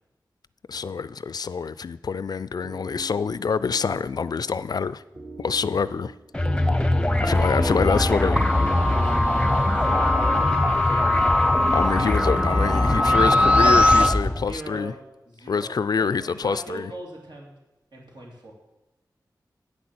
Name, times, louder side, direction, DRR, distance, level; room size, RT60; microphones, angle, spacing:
voice 1, 0.7-5.0 5.4-6.1 7.2-8.4 11.7-14.9 15.5-16.9, left 5 dB, 60° left, 0.3 m, -26 dB
sound 1, 2.6-10.9, right 3 dB, 45° right, 1.7 m, -45 dB
sound 2, 6.3-14.6, left 1 dB, 10° left, 0.8 m, -23 dB
voice 2, 7.2-10.2 10.7-11.3 12.0-12.4 13.2-13.8 14.4-17.5 17.9-18.5, right 1 dB, 70° right, 2.8 m, -39 dB
sound 3, 8.4-14.1, left 1 dB, 15° right, 1.0 m, -21 dB
8.1 x 6.2 x 7.6 m
cardioid pair, 45°, 8 cm